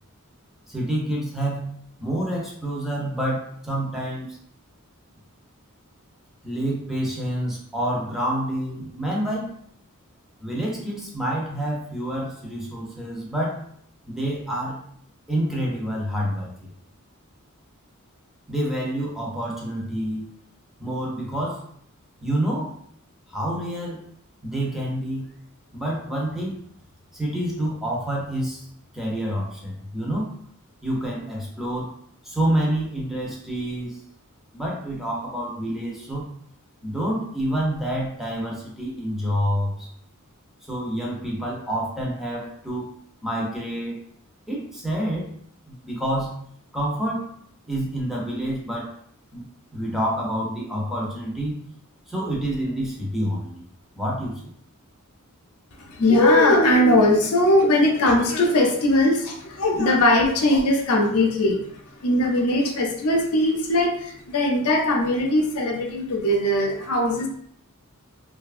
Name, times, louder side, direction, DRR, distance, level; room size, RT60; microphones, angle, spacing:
voice 1, 0.7-1.7 2.0-4.4 6.4-9.5 10.4-13.6 14.1-14.8 15.3-16.7 18.5-20.3 20.8-21.6 22.2-22.7 23.3-24.0 24.4-25.3 25.7-26.6 27.1-28.6 28.9-30.3 30.8-31.9 32.2-34.0 34.5-36.3 36.8-39.9 40.7-42.9 43.2-44.0 44.5-45.3 45.7-46.4 46.7-47.3 47.7-48.9 49.3-49.5 49.7-51.6 52.1-53.6 53.9-54.5, right 1 dB, ahead, -4 dB, 0.6 m, -28 dB
voice 2, 55.8-67.3, left 1 dB, 90° left, 2 dB, 0.6 m, -20 dB
2.7 x 2.3 x 2.4 m, 0.65 s
head